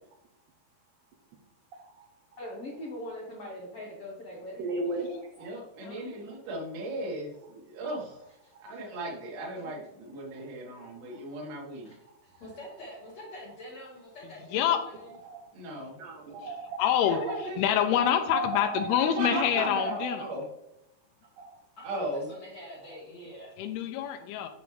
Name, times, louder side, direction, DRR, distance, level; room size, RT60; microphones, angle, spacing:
voice 1, 2.4-4.7 8.4-8.8 11.8-12.0, left 1 dB, 70° left, -3 dB, 1.4 m, -41 dB
voice 2, 4.6-5.5 11.1-11.2 15.3-15.4 16.0-16.8 17.3-17.4 18.1-19.0 19.3-20.2 21.4-21.5, right 3 dB, 75° right, 2 dB, 1.9 m, -35 dB
voice 3, 5.4-8.2 8.6-11.9 15.5-16.0 17.1-17.6 19.0-20.4 21.8-22.3, right 1 dB, 60° right, -1 dB, 2.8 m, -37 dB
voice 4, 12.4-15.1 16.9-17.2 17.9-18.1 21.8-23.6, left 1 dB, 55° left, -4 dB, 2.2 m, -45 dB
voice 5, 16.4-20.3 23.6-24.5, left 10 dB, 90° left, 6 dB, 2.6 m, -27 dB
7.1 x 7.0 x 3.2 m, 0.82 s
omnidirectional pair, 4.5 m